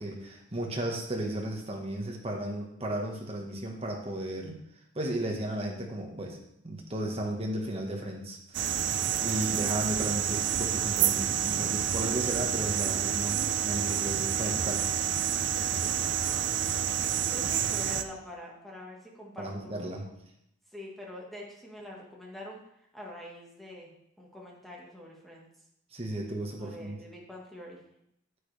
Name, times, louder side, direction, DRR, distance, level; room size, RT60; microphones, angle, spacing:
voice 1, 0.0-4.5 4.9-6.4 6.6-8.9 9.2-14.8 19.4-20.1 25.9-27.0, right 1 dB, 30° right, 1 dB, 1.5 m, -34 dB
sound 1, 8.5-18.0, right 9 dB, 60° right, 0.5 m, -29 dB
voice 2, 17.3-19.7 20.0-20.1 20.7-23.9 24.2-25.5 26.6-27.8, left 1 dB, ahead, -3 dB, 1.6 m, -45 dB
9.6 x 8.5 x 3.4 m, 0.77 s
head